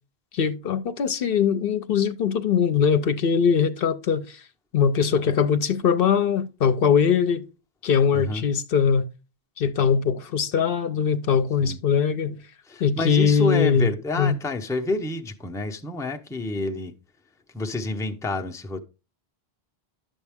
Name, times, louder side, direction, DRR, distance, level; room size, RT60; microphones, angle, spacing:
voice 1, 0.3-4.4 4.7-7.4 7.8-9.1 9.6-12.4 12.8-13.9 14.2-14.4, left 7 dB, 65° left, 0.8 m, -21 dB
voice 2, 8.1-8.5 11.6-11.8 12.7-16.9 17.5-18.8, left 2 dB, 5° left, 0.6 m, -28 dB
10.5 x 7.0 x 3.5 m
omnidirectional pair, 1.0 m